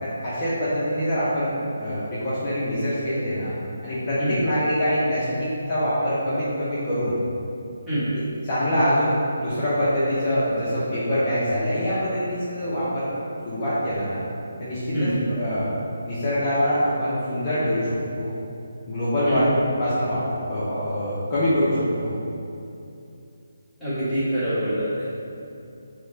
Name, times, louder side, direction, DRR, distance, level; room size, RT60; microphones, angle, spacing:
voice 1, 0.0-3.5 3.8-7.2 8.1-13.1 13.4-14.2 14.6-15.7 16.0-17.9 18.2-18.3 18.9-22.2, equal, 30° left, -11 dB, 0.7 m, -24 dB
voice 2, 14.9-15.2 19.3-19.4 23.8-25.0, equal, ahead, -18 dB, 1.4 m, -25 dB
4.6 x 2.2 x 2.7 m, 2.6 s
figure-of-eight pair, 150°, 0 cm